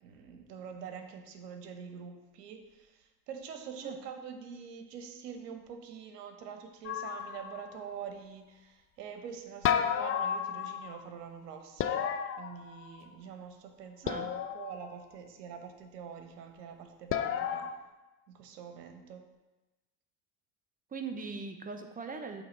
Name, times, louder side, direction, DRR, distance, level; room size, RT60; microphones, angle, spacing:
voice 1, 0.0-12.1 12.4-17.7 18.3-19.2, right 7 dB, 80° right, 5 dB, 1.0 m, -45 dB
sound 1, 6.9-7.8 9.6-11.0 11.8-13.1 14.1-14.9 17.1-17.7, left 9 dB, 30° left, 0.4 m, -32 dB
voice 2, 20.9-22.4, right 4 dB, 20° right, 6 dB, 0.8 m, -40 dB
7.9 x 3.2 x 4.4 m, 1.1 s
hypercardioid pair, 75°, 47 cm